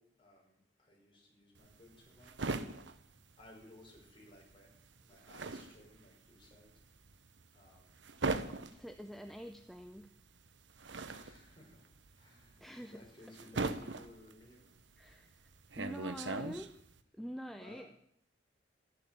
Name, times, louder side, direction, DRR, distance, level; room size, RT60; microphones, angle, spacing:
voice 1, 0.0-2.6 3.4-4.7 5.0-6.7 7.5-8.1 11.1-15.3 17.6-17.9, left 1 dB, 30° left, -1 dB, 5.9 m, -59 dB
sound 1, 1.6-4.1 4.4-17.0, right 3 dB, 70° right, 1.1 m, -40 dB
voice 2, 8.7-10.2 12.6-13.1 15.0-15.5 15.8-16.7 17.1-18.0, equal, ahead, 6 dB, 0.7 m, -46 dB
13.0 x 11.5 x 7.8 m, 0.68 s
head